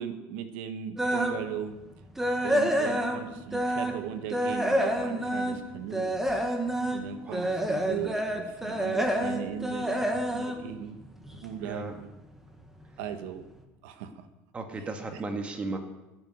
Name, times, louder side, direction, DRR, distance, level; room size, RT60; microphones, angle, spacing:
voice 1, 0.0-1.8 2.4-6.2 6.9-11.0 11.3-12.1 13.0-13.4 13.8-14.3, right 9 dB, 80° right, 8 dB, 1.4 m, -38 dB
sound 1, 1.0-1.4 1.8-4.0 4.3-11.5 11.9-12.1 12.6-12.7 13.1-13.2, equal, 5° right, 1.8 m, -28 dB
voice 2, 7.2-7.5 11.6-11.9 14.5-15.8, right 3 dB, 20° right, 5 dB, 2.1 m, -35 dB
17.0 x 9.8 x 6.5 m, 1.0 s
cardioid pair, 135°, 6 cm